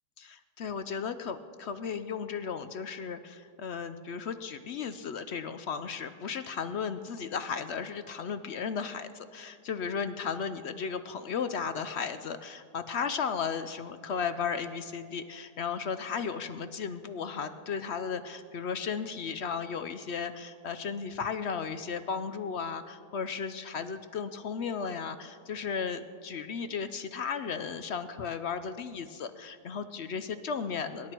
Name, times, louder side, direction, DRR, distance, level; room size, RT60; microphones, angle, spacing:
voice 1, 0.2-31.1, left 6 dB, 70° left, 10 dB, 0.6 m, -35 dB
24.5 x 11.5 x 4.4 m, 2.3 s
omnidirectional pair, 1.8 m